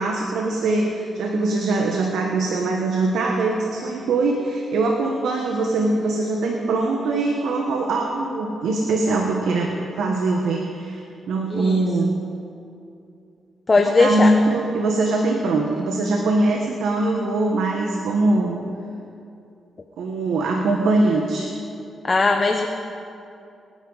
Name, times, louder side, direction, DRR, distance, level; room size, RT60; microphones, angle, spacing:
voice 1, 0.0-12.1 13.8-18.6 20.0-21.5, right 2 dB, 85° right, 1 dB, 1.3 m, -22 dB
voice 2, 11.5-11.8 13.7-14.3 22.0-22.7, left 3 dB, 30° left, 2 dB, 1.0 m, -18 dB
24.0 x 10.5 x 4.1 m, 2.6 s
cardioid pair, 85°, 0 cm